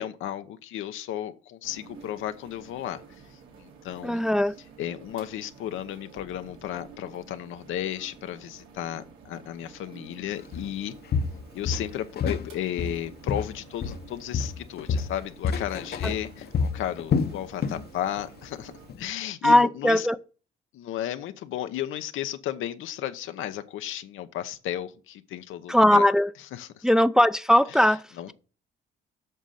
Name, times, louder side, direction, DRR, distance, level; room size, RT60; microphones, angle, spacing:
voice 1, 0.0-3.0 3.3-4.2 4.8-11.0 11.5-18.7 19.0-20.1 20.7-26.1 26.5-26.9 27.7-27.8 28.2-28.3, left 11 dB, 85° left, 1.0 m, -34 dB
sound 1, 1.6-18.9, right 5 dB, 90° right, 3.0 m, -50 dB
voice 2, 4.0-4.5 16.0-16.1 19.4-20.2 25.7-26.3 26.8-28.0, left 1 dB, 5° right, 0.6 m, -19 dB
Walk footsteps, 10.5-10.7 11.1-12.5 12.8-14.1 14.3-17.9 18.2-18.4 18.9-19.0, left 5 dB, 55° left, 1.0 m, -28 dB
8.0 x 6.4 x 5.8 m
cardioid pair, 90°, 20 cm